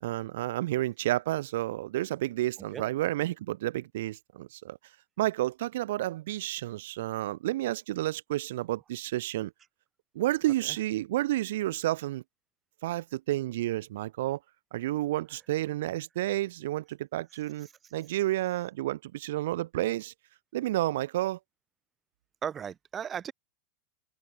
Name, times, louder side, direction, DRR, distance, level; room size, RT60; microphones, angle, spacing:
voice 1, 0.0-4.8 5.2-9.5 10.1-12.2 12.8-14.4 14.7-20.1 20.5-21.4, right 15 dB, 75° right, 0.6 m, -30 dB
voice 2, 17.3-18.2 22.4-23.3, right 8 dB, 20° right, 3.6 m, -38 dB
supercardioid pair, 150°, 0 cm